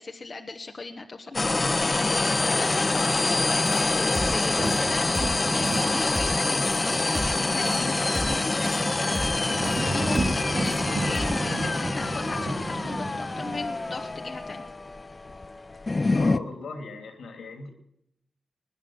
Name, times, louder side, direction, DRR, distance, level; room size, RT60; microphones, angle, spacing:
voice 1, 0.0-14.6, left 3 dB, 50° left, 3 dB, 1.3 m, -37 dB
sound 1, 1.3-16.4, left 2 dB, 35° left, 0.7 m, -26 dB
sound 2, 3.7-3.9 4.2-4.4 4.7-4.8 5.2-5.4 5.7-5.8 6.2-6.4 6.7-6.8 7.2-7.4 7.7-7.8 8.2-8.4 8.7-8.8 9.2-9.4 9.7-9.8 10.2-10.4 10.7-10.8 11.2-11.4, right 1 dB, 10° right, 0.8 m, -33 dB
sound 3, 3.7-14.0, right 2 dB, 65° right, 3.0 m, -34 dB
voice 2, 16.1-17.7, left 4 dB, 85° left, 6 dB, 2.9 m, -38 dB
20.5 x 9.9 x 6.2 m, 0.77 s
cardioid pair, 45°, 0 cm